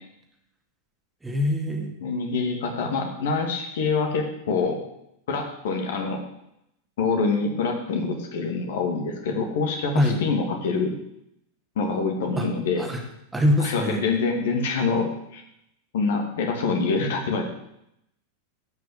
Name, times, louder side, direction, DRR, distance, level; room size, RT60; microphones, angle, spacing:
voice 1, 1.2-1.9 9.9-10.2 12.4-12.5 12.8-13.0 13.3-14.0, left 1 dB, 10° right, 2 dB, 2.1 m, -23 dB
voice 2, 2.0-4.8 5.3-6.2 7.0-10.9 11.8-12.9 13.6-15.4 15.9-17.4, left 4 dB, 55° left, 3 dB, 2.2 m, -25 dB
11.5 x 5.9 x 8.6 m, 0.80 s
figure-of-eight pair, 90°, 0 cm